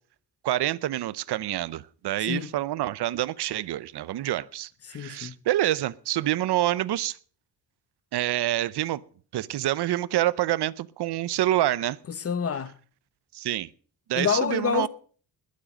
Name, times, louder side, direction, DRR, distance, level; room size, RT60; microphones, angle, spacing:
voice 1, 0.4-7.2 8.1-9.0 9.3-12.0 13.3-13.7 14.1-14.9, right 14 dB, 75° right, 0.7 m, -27 dB
voice 2, 2.2-2.5 4.8-5.3 12.1-12.7 14.1-14.9, left 6 dB, 35° left, 0.9 m, -27 dB
21.0 x 7.6 x 6.4 m
wide cardioid pair, 170°, 40 cm